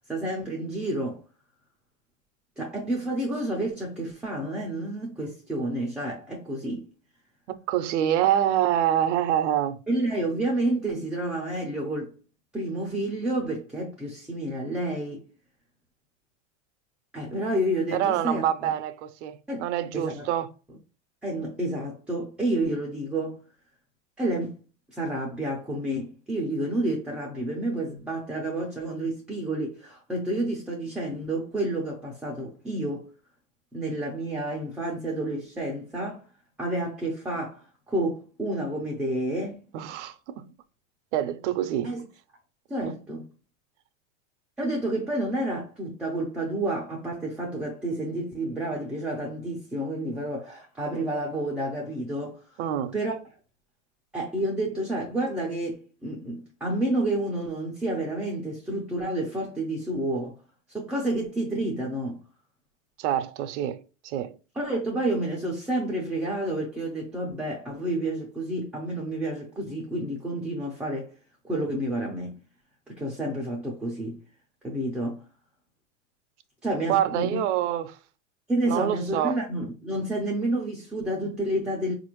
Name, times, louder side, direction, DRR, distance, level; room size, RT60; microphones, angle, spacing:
voice 1, 0.1-1.2 2.6-6.8 9.9-12.1 12.5-15.3 17.1-18.7 19.5-20.3 21.2-23.4 24.2-24.6 24.9-33.1 33.7-36.2 36.6-37.6 37.9-39.6 41.8-42.1 42.7-43.3 44.6-52.4 52.9-53.1 54.1-60.3 60.7-62.2 64.6-71.1 71.4-72.4 72.9-74.2 74.6-75.2 76.6-77.4 78.5-81.9, right 1 dB, ahead, 0.4 m, -30 dB
voice 2, 7.7-9.8 17.9-20.5 39.7-40.5 41.1-42.0 42.8-43.0 52.6-52.9 63.0-64.4 76.9-78.0 78.6-79.4, right 11 dB, 65° right, 0.6 m, -26 dB
4.2 x 2.5 x 3.0 m
supercardioid pair, 135°, 39 cm